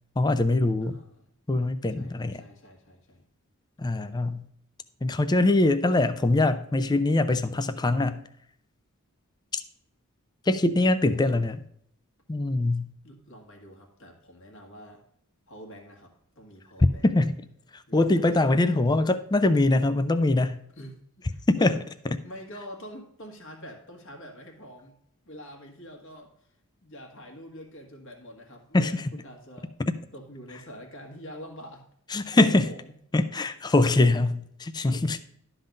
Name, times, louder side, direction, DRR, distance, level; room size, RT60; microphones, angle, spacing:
voice 1, 0.2-1.0 1.5-2.4 3.8-4.4 5.0-8.2 9.5-9.6 10.5-11.6 12.3-12.9 17.0-17.4 17.7-20.6 21.5-21.7 28.7-29.1 29.8-29.9 32.1-32.7 33.1-35.2, left 2 dB, 20° left, 11 dB, 0.4 m, -23 dB
voice 2, 0.8-1.3 1.9-3.2 11.0-11.2 13.0-15.0 15.5-17.1 17.9-18.7 20.8-21.8 22.2-24.9 25.2-26.3 26.8-29.7 30.1-31.8 32.3-32.8, equal, 60° left, 2 dB, 1.6 m, -45 dB
12.0 x 4.0 x 5.1 m, 0.70 s
head